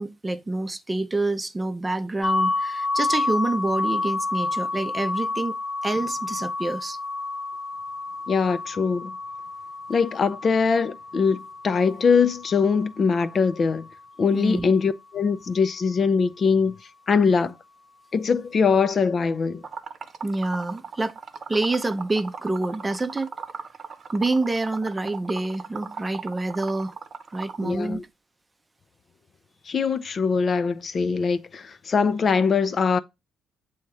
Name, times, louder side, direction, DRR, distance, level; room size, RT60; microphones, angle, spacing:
voice 1, 0.0-5.5 5.8-7.0 14.3-14.7 20.2-21.2 21.5-23.3 24.1-27.0 27.3-28.1, right 2 dB, 20° right, 0.6 m, -27 dB
sound 1, 2.2-14.0, left 3 dB, 25° left, 1.0 m, -30 dB
voice 2, 8.3-9.1 9.9-13.9 14.2-16.7 17.1-17.5 18.1-19.6 27.6-28.0 29.7-33.0, left 5 dB, 45° left, 0.5 m, -22 dB
Liquid, 19.6-27.6, right 5 dB, 50° right, 0.8 m, -37 dB
7.6 x 2.8 x 4.7 m
cardioid pair, 90°, 0 cm